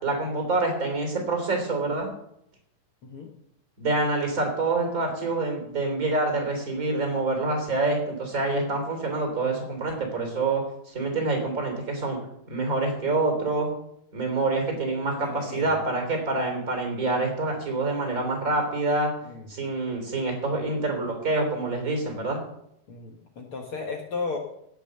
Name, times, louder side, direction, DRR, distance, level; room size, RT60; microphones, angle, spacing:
voice 1, 0.0-2.1 3.8-10.6 10.9-12.2 12.5-13.7 14.1-19.1 19.5-22.4, right 2 dB, 25° right, 3 dB, 3.8 m, -26 dB
voice 2, 15.2-15.8 19.2-19.5 22.9-24.4, left 4 dB, 55° left, 1 dB, 1.7 m, -34 dB
17.5 x 6.2 x 6.7 m, 0.74 s
omnidirectional pair, 4.1 m